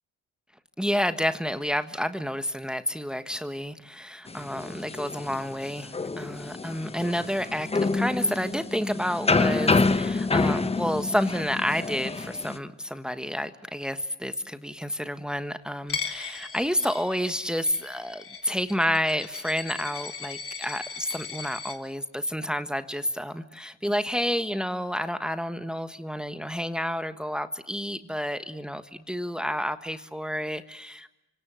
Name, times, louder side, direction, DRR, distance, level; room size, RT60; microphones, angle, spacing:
voice 1, 0.8-31.1, equal, 5° right, 10 dB, 1.5 m, -30 dB
sound 1, 4.3-12.6, left 3 dB, 20° left, 1.2 m, -27 dB
Coin (dropping), 15.9-21.7, left 6 dB, 45° left, 3.9 m, -38 dB
28.5 x 25.5 x 7.7 m, 0.91 s
cardioid pair, 90°, 30 cm